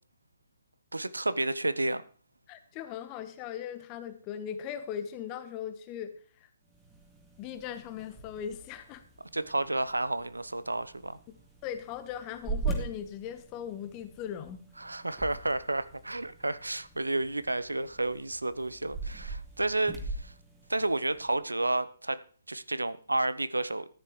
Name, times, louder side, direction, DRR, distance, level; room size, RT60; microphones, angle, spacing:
voice 1, 0.9-2.0 9.3-11.2 14.8-20.3 20.7-22.2 22.5-23.9, right 2 dB, 80° right, 14 dB, 0.7 m, -31 dB
voice 2, 2.5-6.1 7.4-9.0 11.6-14.6, left 9 dB, 25° left, 11 dB, 1.1 m, -39 dB
sound 1, 6.7-21.4, right 4 dB, 10° right, 2.1 m, -42 dB
14.0 x 10.5 x 3.1 m, 0.43 s
figure-of-eight pair, 130°, 0 cm